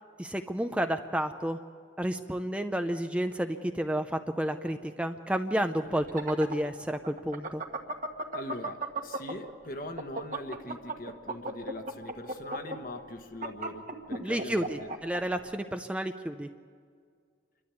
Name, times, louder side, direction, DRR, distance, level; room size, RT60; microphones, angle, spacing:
voice 1, 0.2-1.6 2.0-7.6 14.2-16.5, equal, 5° right, 7 dB, 0.5 m, -31 dB
sound 1, 5.9-9.5 9.8-15.2, right 2 dB, 45° right, 1.6 m, -35 dB
voice 2, 8.3-14.9, left 1 dB, 50° left, 6 dB, 1.4 m, -41 dB
28.0 x 12.5 x 8.3 m, 2.1 s
head